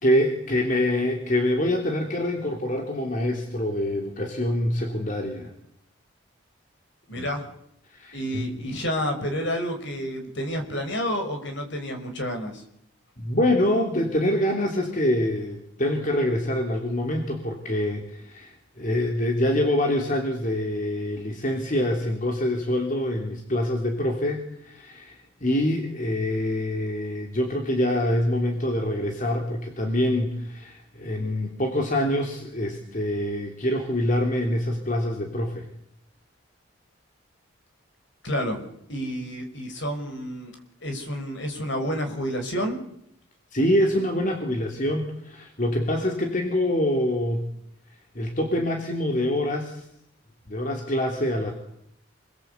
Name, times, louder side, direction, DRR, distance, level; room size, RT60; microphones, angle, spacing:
voice 1, 0.0-5.5 7.1-7.3 7.9-8.5 13.2-35.7 43.5-47.5 48.1-49.9 50.5-51.5, left 1 dB, 40° left, 2 dB, 3.1 m, -25 dB
voice 2, 7.1-7.5 8.1-12.6 38.2-40.6 40.8-42.8, equal, 60° left, 5 dB, 5.7 m, -30 dB
28.0 x 22.0 x 8.3 m, 0.74 s
head